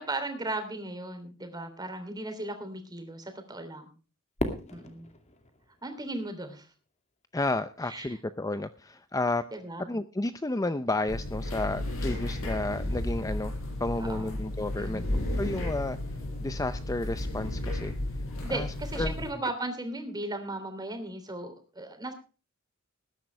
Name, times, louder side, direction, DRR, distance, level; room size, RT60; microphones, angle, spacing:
voice 1, 0.0-3.9 4.7-5.1 5.8-6.7 7.8-8.1 9.5-9.8 14.0-14.3 14.8-15.1 18.4-22.1, right 2 dB, 20° right, 7 dB, 3.2 m, -36 dB
Fireworks, 4.4-6.7, left 1 dB, 35° left, 2.4 m, -37 dB
voice 2, 7.3-9.5 9.8-13.5 13.8-15.0 15.4-16.0 16.4-17.9 18.5-18.7 19.0-19.1, left 2 dB, 15° left, 11 dB, 0.6 m, -31 dB
sound 1, 11.1-19.3, left 1 dB, 70° left, 6.9 m, -33 dB
20.0 x 10.5 x 3.3 m, 0.35 s
head